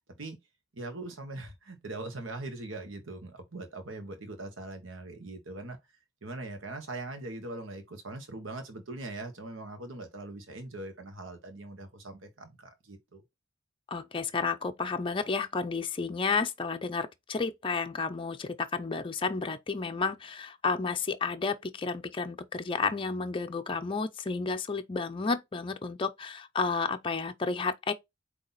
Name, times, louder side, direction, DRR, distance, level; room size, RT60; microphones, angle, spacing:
voice 1, 0.7-5.8 6.2-13.2, right 2 dB, 80° right, 1.3 m, -41 dB
voice 2, 13.9-27.9, left 4 dB, 25° left, 0.5 m, -31 dB
8.1 x 2.9 x 4.0 m
head